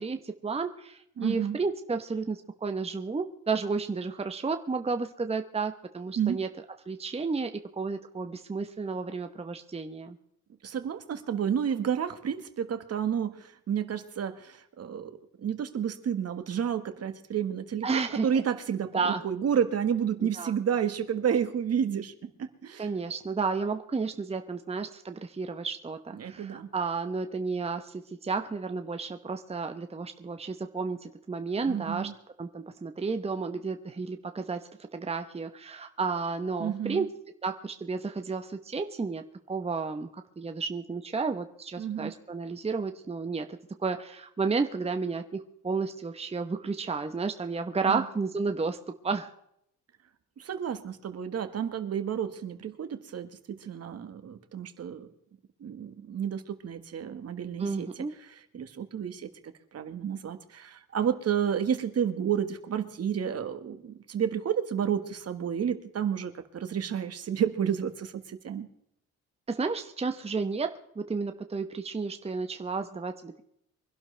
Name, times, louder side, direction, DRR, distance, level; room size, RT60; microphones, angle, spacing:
voice 1, 0.0-6.5 6.9-10.2 17.8-18.3 18.9-19.2 20.2-20.5 22.8-32.1 32.4-37.1 37.4-49.3 57.6-58.1 69.5-73.4, right 4 dB, 20° right, 7 dB, 1.0 m, -32 dB
voice 2, 1.2-1.6 6.2-6.4 10.6-15.1 15.4-22.9 26.2-26.7 31.6-32.1 36.6-37.1 41.8-42.1 47.8-48.0 50.4-55.1 55.6-57.9 58.5-68.7, right 8 dB, 55° right, 9 dB, 1.6 m, -31 dB
24.0 x 12.0 x 3.4 m, 0.72 s
cardioid pair, 90°, 30 cm